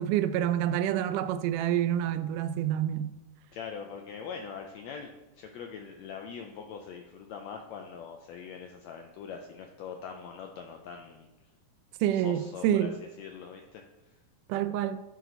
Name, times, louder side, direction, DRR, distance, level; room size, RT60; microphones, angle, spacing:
voice 1, 0.0-3.1 12.0-13.0 14.5-15.0, right 11 dB, 85° right, 2.1 m, -27 dB
voice 2, 3.5-11.3 12.1-12.9 13.2-13.8, left 6 dB, 90° left, 1.5 m, -42 dB
11.0 x 4.1 x 4.5 m
omnidirectional pair, 3.7 m